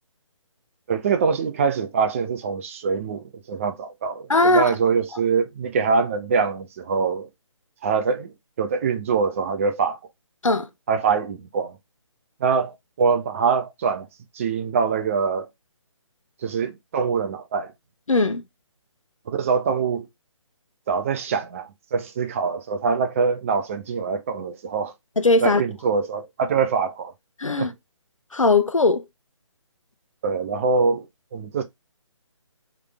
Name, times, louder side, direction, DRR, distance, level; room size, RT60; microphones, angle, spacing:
voice 1, 0.9-7.3 7.8-8.3 8.6-10.0 10.9-11.8 12.4-14.1 14.3-15.5 16.4-17.7 19.3-20.1 20.9-24.9 25.4-27.1 27.6-27.7 30.2-31.1 31.3-31.6, right 5 dB, 25° right, 0.6 m, -24 dB
voice 2, 4.3-4.7 10.4-10.7 18.1-18.4 25.2-25.6 27.4-27.7 28.3-29.1, left 3 dB, 85° left, 0.8 m, -19 dB
3.6 x 3.3 x 3.3 m
figure-of-eight pair, 145°, 16 cm